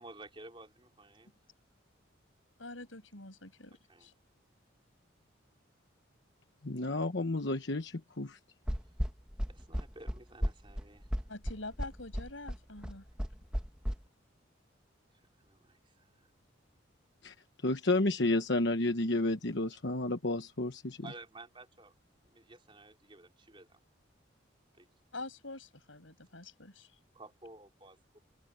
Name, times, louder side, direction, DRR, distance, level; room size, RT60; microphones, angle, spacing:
voice 1, 0.0-1.3 3.9-4.1 9.4-11.1 15.1-16.3 21.0-21.9 22.2-23.8 24.8-24.9 27.1-28.2, right 2 dB, 25° right, 3.9 m, -53 dB
voice 2, 2.6-4.1 11.3-13.0 25.1-27.0, left 2 dB, 80° left, 6.8 m, -46 dB
voice 3, 6.6-8.4 17.2-17.3 17.6-21.1, left 2 dB, 60° left, 1.1 m, -31 dB
sound 1, 8.7-13.9, equal, 5° right, 1.3 m, -34 dB
open air
head